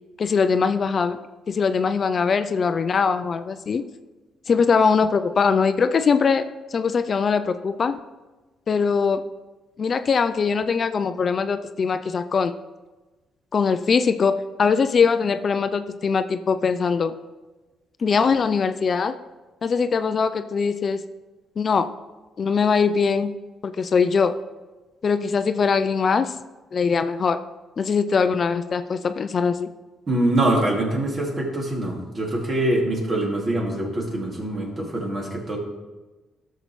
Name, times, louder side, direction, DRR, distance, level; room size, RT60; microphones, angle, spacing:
voice 1, 0.2-1.2 1.5-3.8 4.5-8.0 8.7-9.2 9.8-12.5 13.5-17.2 18.0-19.2 19.6-21.0 21.6-21.9 22.4-23.3 23.6-24.4 25.0-26.3 26.7-27.4 27.8-29.7, left 5 dB, 45° left, 10 dB, 0.4 m, -21 dB
voice 2, 30.1-35.6, right 1 dB, 40° right, -1 dB, 2.4 m, -24 dB
13.0 x 6.6 x 3.2 m, 1.2 s
cardioid pair, 85°, 0 cm